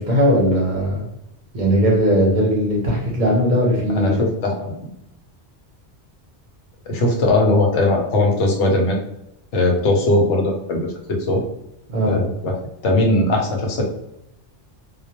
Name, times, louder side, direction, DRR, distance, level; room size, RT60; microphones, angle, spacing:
voice 1, 0.1-1.1 1.5-4.2 11.9-12.2, equal, 50° right, -3 dB, 0.7 m, -18 dB
voice 2, 3.9-4.8 6.9-9.0 9.5-10.8 11.1-11.4 12.0-12.6 12.8-13.8, left 2 dB, 85° left, 1 dB, 0.9 m, -19 dB
2.2 x 2.2 x 2.8 m, 0.82 s
omnidirectional pair, 1.2 m